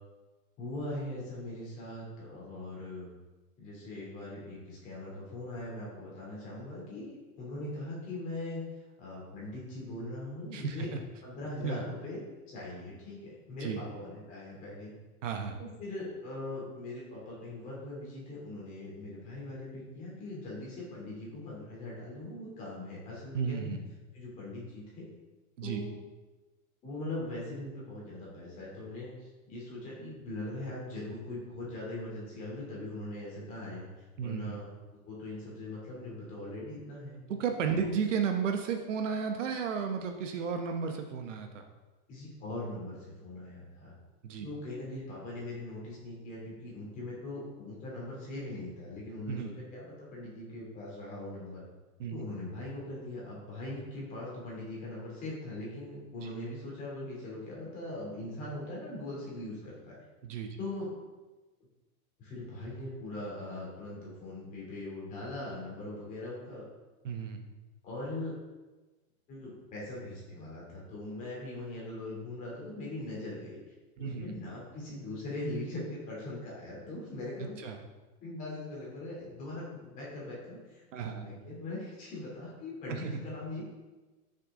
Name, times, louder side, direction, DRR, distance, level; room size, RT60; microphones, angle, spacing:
voice 1, 0.6-3.1 3.6-8.6 9.0-11.0 11.2-12.2 12.5-14.9 15.6-23.8 24.1-25.0 25.6-26.0 26.8-33.9 34.2-34.6 34.9-37.2 37.8-37.9 42.1-43.9 44.4-51.7 52.1-60.0 60.6-60.9 62.2-66.6 67.8-68.3 69.3-73.6 74.0-77.7 78.2-80.8 81.1-83.7, left 1 dB, 20° left, -5 dB, 2.9 m, -41 dB
voice 2, 10.5-11.0 11.6-11.8 13.6-13.8 15.2-15.6 23.3-23.8 25.6-25.8 34.2-34.6 37.3-41.6 44.2-44.5 49.3-49.5 52.0-52.2 56.2-56.3 60.2-60.6 67.0-67.4 74.0-74.3 77.6-77.8 80.9-81.2 82.9-83.2, right 6 dB, 55° right, 5 dB, 1.0 m, -33 dB
13.5 x 6.6 x 3.7 m, 1.2 s
supercardioid pair, 180°, 44 cm